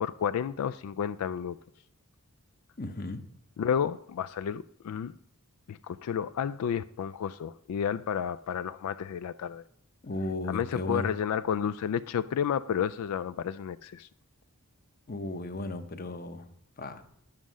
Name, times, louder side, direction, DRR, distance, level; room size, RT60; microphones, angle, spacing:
voice 1, 0.0-1.6 3.6-5.2 5.7-9.6 10.5-14.1, left 8 dB, 80° left, 0.3 m, -31 dB
voice 2, 2.8-3.2 10.0-11.1 15.1-16.4 16.8-17.0, left 2 dB, 40° left, 0.8 m, -35 dB
10.0 x 7.4 x 6.2 m
head